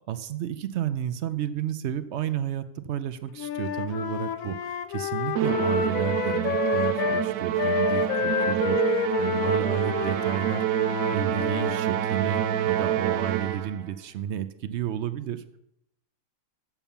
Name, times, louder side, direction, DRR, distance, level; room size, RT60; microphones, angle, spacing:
voice 1, 0.1-10.6 11.1-15.6, right 10 dB, 65° right, 11 dB, 0.7 m, -32 dB
Wind instrument woodwind instrument, 3.4-7.3 7.6-11.8, left 7 dB, 85° left, 1.1 m, -29 dB
Musical instrument, 5.4-13.8, right 12 dB, 85° right, 1.0 m, -27 dB
7.2 x 6.9 x 7.1 m, 0.81 s
omnidirectional pair, 1.4 m